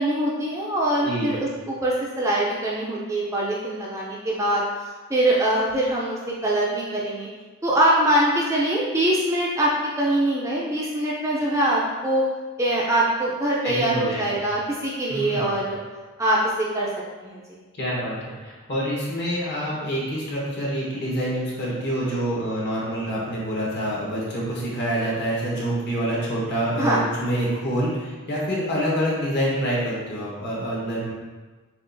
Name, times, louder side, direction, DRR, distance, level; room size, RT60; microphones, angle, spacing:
voice 1, 0.0-7.3 7.6-9.7 10.0-12.3 12.6-15.8 16.2-16.9 17.2-17.6 26.8-27.0, right 1 dB, 15° right, -5 dB, 0.4 m, -23 dB
voice 2, 1.0-1.4 13.6-14.4 15.1-15.6 17.8-31.1, equal, 50° left, -5 dB, 1.1 m, -26 dB
7.3 x 2.4 x 2.6 m, 1.3 s
head